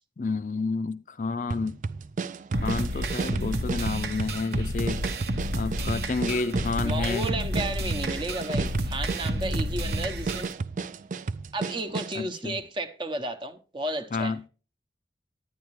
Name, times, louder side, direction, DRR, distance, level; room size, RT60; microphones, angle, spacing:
voice 1, 0.2-1.8 2.6-5.0 5.5-7.3 12.1-12.6 14.1-14.4, left 4 dB, 45° left, 0.4 m, -30 dB
sound 1, 1.5-12.2, right 4 dB, 45° right, 0.4 m, -33 dB
sound 2, 2.5-10.5, equal, 65° right, 1.0 m, -30 dB
voice 2, 6.8-10.5 11.5-14.3, right 1 dB, 25° right, 0.9 m, -33 dB
11.0 x 9.6 x 3.1 m
head